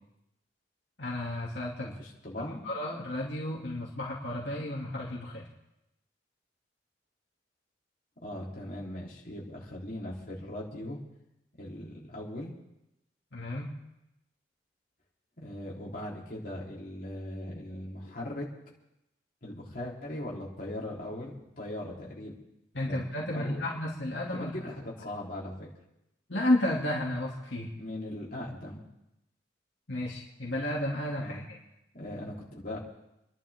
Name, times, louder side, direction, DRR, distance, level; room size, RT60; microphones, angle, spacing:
voice 1, 1.0-1.9 2.6-5.5 13.3-13.7 22.7-24.5 26.3-27.7 29.9-31.6, left 1 dB, 75° left, -4 dB, 2.6 m, -32 dB
voice 2, 1.8-2.6 8.2-11.0 11.6-12.5 15.4-18.5 19.4-22.3 22.9-23.0 23.3-23.6 24.3-25.7 27.8-28.8 31.1-31.4 31.9-32.8, left 1 dB, 50° left, -5 dB, 3.8 m, -39 dB
29.0 x 11.5 x 3.7 m, 0.87 s
head